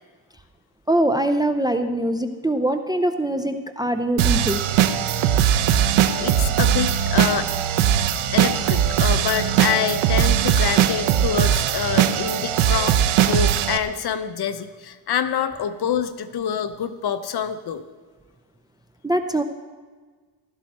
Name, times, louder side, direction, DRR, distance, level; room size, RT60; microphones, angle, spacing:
voice 1, 0.9-4.6 19.0-19.4, right 1 dB, 10° right, 7 dB, 0.6 m, -22 dB
sound 1, 4.2-13.8, right 10 dB, 75° right, 1.0 m, -20 dB
voice 2, 6.2-7.5 8.3-13.0 13.2-17.8, left 8 dB, 50° left, 10 dB, 0.9 m, -26 dB
16.0 x 13.0 x 4.3 m, 1.5 s
cardioid pair, 125°, 49 cm